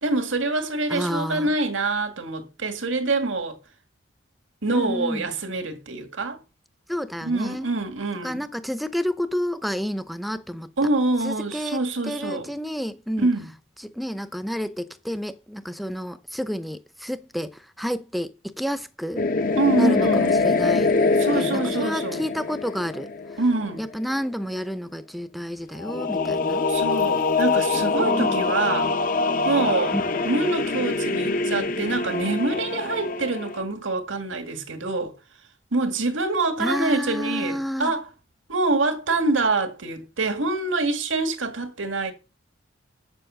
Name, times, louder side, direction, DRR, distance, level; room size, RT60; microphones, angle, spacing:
voice 1, 0.0-3.6 4.6-6.4 7.2-8.4 10.8-12.5 13.2-13.5 19.6-20.4 21.2-22.2 23.4-23.8 26.7-28.9 29.5-29.9 30.2-35.1 35.7-38.1 38.5-42.1, right 3 dB, 90° right, 1.9 m, -25 dB
voice 2, 0.9-1.5 4.7-5.3 6.9-7.7 8.2-10.7 11.2-11.8 12.1-13.3 13.8-19.2 19.8-20.9 21.3-23.1 23.8-26.6 28.0-28.5 29.9-30.2 36.6-37.9, equal, ahead, 0.6 m, -30 dB
sound 1, 19.2-23.7 25.8-33.6, left 3 dB, 45° left, 0.7 m, -24 dB
8.1 x 6.9 x 6.3 m
head